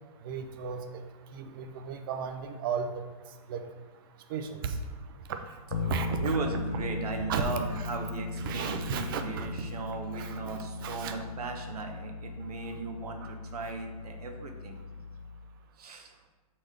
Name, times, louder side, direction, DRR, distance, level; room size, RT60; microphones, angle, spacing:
voice 1, 0.2-1.0 1.3-3.0 3.5-3.7 4.3-4.8 5.3-5.4 5.7-6.4 7.3-7.4 8.4-9.5 10.1-11.2 13.2-13.3, right 6 dB, 35° right, 6 dB, 0.5 m, -35 dB
Bass guitar, 5.7-15.6, left 3 dB, 40° left, 0.6 m, -38 dB
voice 2, 6.2-14.8 15.8-16.1, right 4 dB, 75° right, 4 dB, 1.1 m, -37 dB
7.3 x 4.2 x 3.3 m, 1.3 s
hypercardioid pair, 160°, 19 cm